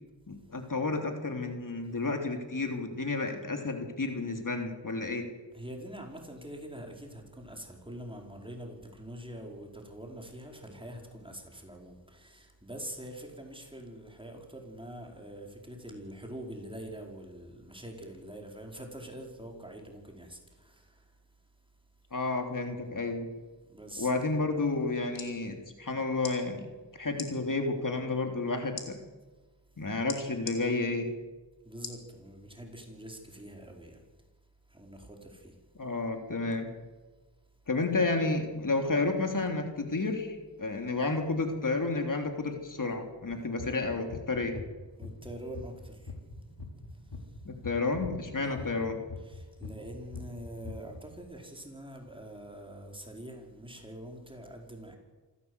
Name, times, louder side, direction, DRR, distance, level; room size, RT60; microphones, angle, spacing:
voice 1, 0.3-5.3 22.1-23.3 24.0-26.7 26.9-29.0 29.8-31.1 35.8-36.7 37.7-44.5 47.4-49.0, left 3 dB, 45° left, 4 dB, 3.2 m, -31 dB
voice 2, 5.5-21.1 23.7-24.1 31.6-34.0 34.7-35.6 45.0-46.1 46.9-47.4 48.4-48.6 49.2-55.0, right 1 dB, 10° right, 1 dB, 5.0 m, -45 dB
sound 1, 24.9-25.3 26.2-26.4 27.1-27.3 28.8-28.9 30.1-30.6 31.8-32.0 32.6-32.7, left 5 dB, 90° left, 3.8 m, -40 dB
sound 2, 43.3-45.3 45.5-49.4 49.6-51.0, left 4 dB, 65° left, 4.8 m, -42 dB
27.0 x 16.0 x 8.2 m, 1.3 s
wide cardioid pair, 80°, 44 cm